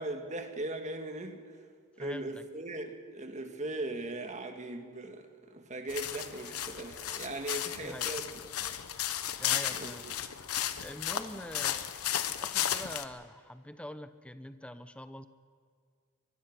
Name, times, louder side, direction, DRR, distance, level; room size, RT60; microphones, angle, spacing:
voice 1, 0.0-1.4 2.0-8.8 9.7-9.9, right 2 dB, 35° right, 6 dB, 1.7 m, -39 dB
voice 2, 2.0-2.4 7.8-8.3 9.4-10.1 10.8-15.3, left 1 dB, 5° left, 11 dB, 0.7 m, -45 dB
sound 1, 5.9-13.0, left 10 dB, 80° left, 1.0 m, -34 dB
24.0 x 21.0 x 5.9 m, 2.1 s
head